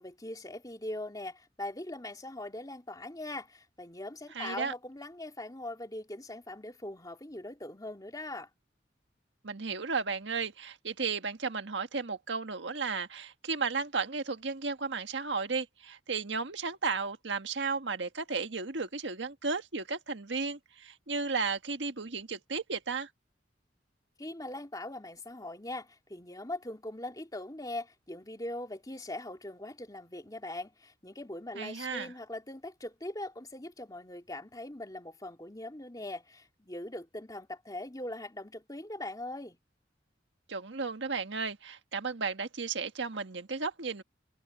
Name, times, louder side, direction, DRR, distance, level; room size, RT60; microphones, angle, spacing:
voice 1, 0.0-8.5 24.2-39.6, left 1 dB, 20° left, 3.0 m, -41 dB
voice 2, 4.3-4.7 9.4-23.1 31.6-32.1 40.5-44.0, right 4 dB, 90° right, 1.6 m, -34 dB
head